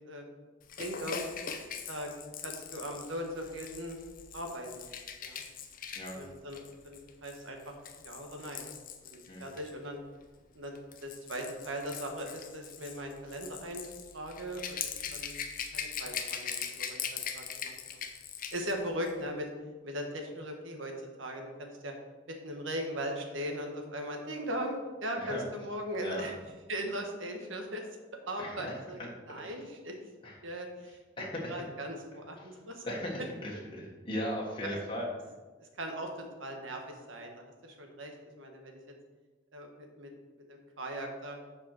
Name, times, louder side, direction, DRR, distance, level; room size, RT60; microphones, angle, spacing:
Rattle / Rattle (instrument), 0.7-9.7 10.6-18.8 19.0-19.2, left 7 dB, 45° left, 0.7 m, -41 dB
voice 1, 0.8-1.2 1.9-2.1 2.4-4.0 4.3-4.9 5.2-5.4 6.1-8.6 9.0-10.0 10.5-13.8 14.1-15.4 15.7-18.0 18.5-19.5 19.8-20.9 21.2-21.9 22.3-26.3 26.7-27.8 28.3-29.0 29.3-29.9 30.4-32.8 34.7-34.8 35.6-36.1 36.4-38.8 39.5-40.1 40.5-41.4, equal, 80° right, 3 dB, 1.5 m, -39 dB
voice 2, 28.4-29.5 30.2-30.3 31.2-31.6 32.8-35.1, left 1 dB, 25° left, -4 dB, 1.4 m, -38 dB
7.1 x 5.3 x 6.4 m, 1.3 s
head